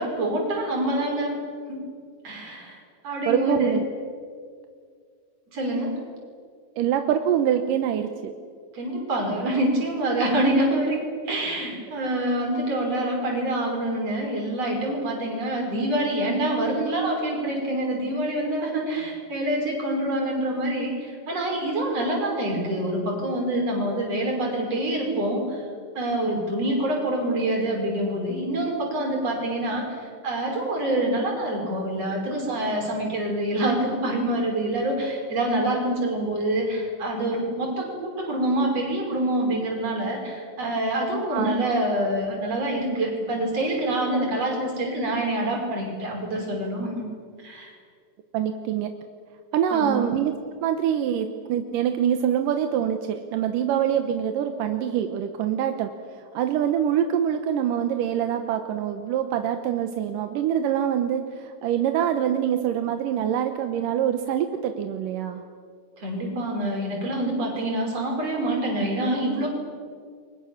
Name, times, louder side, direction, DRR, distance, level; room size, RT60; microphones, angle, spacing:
voice 1, 0.0-1.4 1.7-1.9 2.2-3.8 5.5-6.0 8.7-11.0 11.2-25.6 25.9-47.1 47.4-47.7 49.7-50.1 66.0-69.5, right 1 dB, 45° right, 0 dB, 6.7 m, -26 dB
voice 2, 3.3-3.8 6.8-8.3 41.3-41.5 48.3-48.9 49.5-50.3 50.6-55.9 56.3-65.4, right 9 dB, 85° right, 7 dB, 2.7 m, -25 dB
29.0 x 24.0 x 7.3 m, 2.1 s
omnidirectional pair, 3.8 m